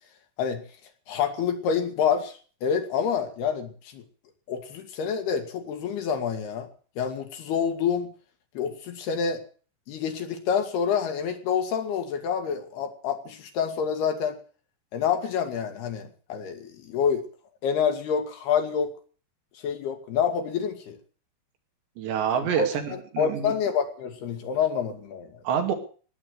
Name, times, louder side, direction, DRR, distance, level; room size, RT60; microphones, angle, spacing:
voice 1, 1.1-4.0 4.5-6.7 7.0-8.1 8.6-9.4 9.9-14.4 14.9-17.3 17.6-19.0 19.6-21.0 22.6-25.4, left 7 dB, 70° left, 5 dB, 4.0 m, -27 dB
voice 2, 22.0-23.5 25.4-25.7, right 8 dB, 85° right, 4 dB, 4.7 m, -27 dB
18.5 x 8.6 x 8.0 m, 0.41 s
omnidirectional pair, 4.9 m